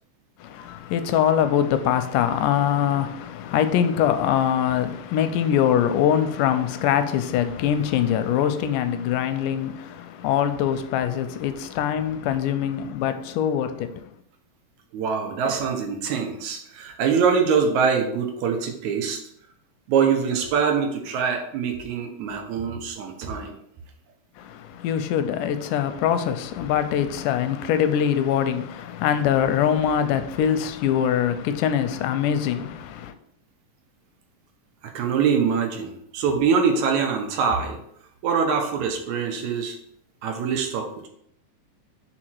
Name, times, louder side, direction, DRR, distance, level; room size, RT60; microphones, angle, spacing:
voice 1, 0.4-14.1 24.4-33.1, left 9 dB, 90° left, 2.1 m, -23 dB
voice 2, 14.9-19.2 19.9-23.5 34.8-37.8 38.2-39.8 40.2-41.1, right 6 dB, 70° right, 2.1 m, -24 dB
4.9 x 4.4 x 4.5 m
omnidirectional pair, 3.6 m